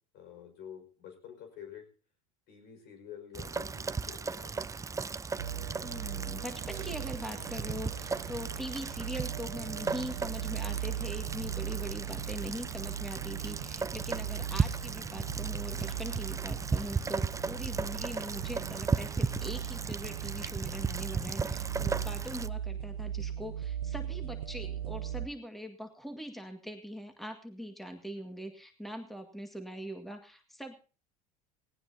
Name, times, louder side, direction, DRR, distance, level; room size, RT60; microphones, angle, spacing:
voice 1, 0.1-1.9 2.5-4.7 14.3-14.4, left 9 dB, 60° left, 6 dB, 5.4 m, -49 dB
Rain, 3.3-22.5, right 4 dB, 15° right, 0.6 m, -36 dB
sound 1, 5.4-25.3, right 10 dB, 90° right, 0.6 m, -39 dB
voice 2, 5.8-30.7, equal, ahead, 6 dB, 1.9 m, -42 dB
sound 2, 6.6-19.4, right 14 dB, 70° right, 1.4 m, -55 dB
18.0 x 17.5 x 2.8 m, 0.37 s
hypercardioid pair, 80°, 19 cm